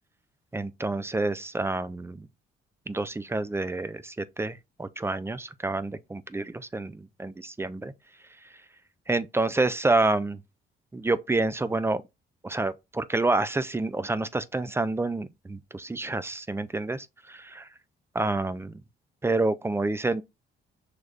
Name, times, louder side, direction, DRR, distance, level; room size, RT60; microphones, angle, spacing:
voice 1, 0.5-2.3 2.9-7.9 9.1-10.4 10.9-12.0 12.4-17.7 18.1-18.8 19.2-20.2, right 2 dB, 10° right, 0.4 m, -28 dB
6.2 x 3.3 x 2.4 m
cardioid pair, 90°, 20 cm